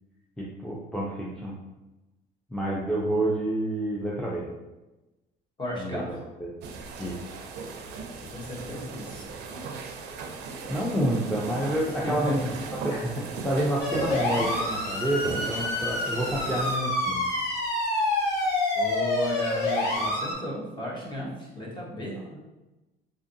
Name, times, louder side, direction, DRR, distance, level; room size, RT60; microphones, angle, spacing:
voice 1, 0.4-1.6 2.5-4.5 5.8-6.0 6.4-6.5 7.0-7.2 10.7-12.4 12.8-17.2 22.3-22.4, right 1 dB, 5° left, -6 dB, 0.4 m, -28 dB
voice 2, 5.6-6.1 8.3-9.2 12.0-12.4 18.7-22.2, left 1 dB, 30° left, -4 dB, 0.9 m, -34 dB
sound 1, 6.6-16.8, right 4 dB, 85° right, 0.4 m, -38 dB
sound 2, 13.8-20.3, left 2 dB, 85° left, 1.1 m, -27 dB
2.6 x 2.5 x 2.6 m, 1.1 s
cardioid pair, 110°, 17 cm